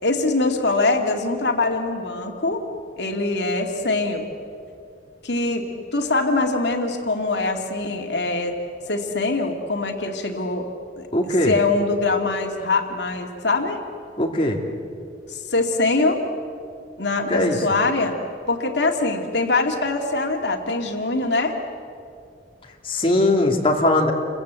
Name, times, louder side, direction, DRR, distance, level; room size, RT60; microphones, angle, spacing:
voice 1, 0.0-2.6 3.0-4.3 5.2-5.6 5.9-8.6 8.9-10.7 11.0-13.8 15.3-16.2 17.0-18.2 18.5-21.6, left 3 dB, 75° left, 3 dB, 2.4 m, -23 dB
voice 2, 11.1-11.6 14.2-14.6 17.3-17.6 22.8-24.1, left 1 dB, 30° left, 1 dB, 2.5 m, -20 dB
29.0 x 23.5 x 8.2 m, 2.4 s
head